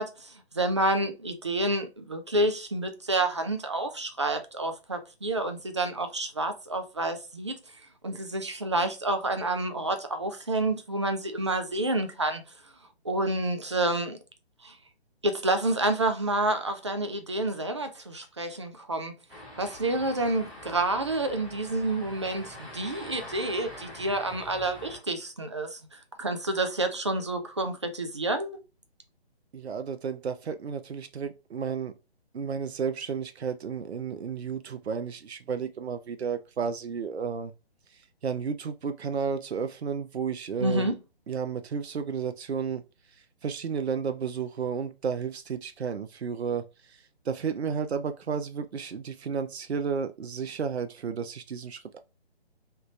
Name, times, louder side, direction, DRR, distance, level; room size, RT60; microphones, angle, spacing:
voice 1, 0.0-7.6 8.0-12.4 13.0-14.2 14.6-14.8 15.2-19.1 19.6-28.6 40.6-41.0, right 2 dB, 30° right, 0.4 m, -29 dB
sound 1, 19.3-25.0, left 1 dB, 5° right, 1.1 m, -44 dB
voice 2, 29.5-31.9 32.3-37.5 37.9-40.9 41.3-42.8 43.1-52.0, right 6 dB, 80° right, 0.5 m, -32 dB
3.2 x 2.4 x 3.0 m
figure-of-eight pair, 145°, 32 cm